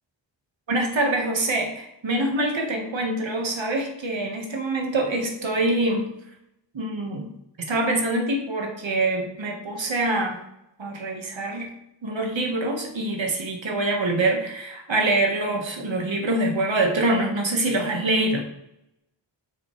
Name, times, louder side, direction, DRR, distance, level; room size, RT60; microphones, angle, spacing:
voice 1, 0.7-6.1 6.7-7.3 7.7-10.4 10.8-11.7 12.0-18.4, right 2 dB, 85° right, 2 dB, 1.6 m, -25 dB
7.1 x 6.6 x 3.2 m, 0.81 s
wide cardioid pair, 100°, 44 cm